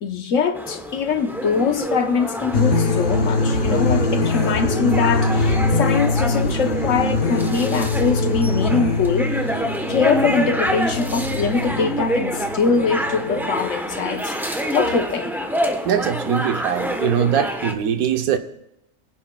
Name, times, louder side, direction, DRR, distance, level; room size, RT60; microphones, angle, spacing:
voice 1, 0.0-14.3 14.7-15.3, left 5 dB, 65° left, 1.2 m, -23 dB
sound 1, 0.5-17.7, equal, ahead, 0.7 m, -27 dB
sound 2, 2.5-13.5, left 2 dB, 45° left, 0.9 m, -23 dB
voice 2, 15.8-18.4, right 8 dB, 90° right, 1.2 m, -21 dB
23.0 x 10.0 x 2.2 m
omnidirectional pair, 1.5 m